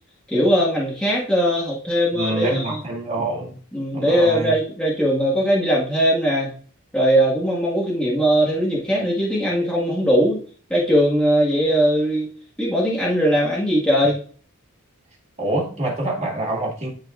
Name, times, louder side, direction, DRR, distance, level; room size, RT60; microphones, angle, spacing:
voice 1, 0.3-2.8 3.2-3.3 3.7-6.5 6.9-10.4 10.7-12.3 12.6-14.2, equal, 5° left, -6 dB, 1.6 m, -20 dB
voice 2, 2.1-3.6 3.9-4.5 15.4-16.9, right 2 dB, 30° right, -3 dB, 2.1 m, -26 dB
11.5 x 4.0 x 2.5 m, 0.43 s
head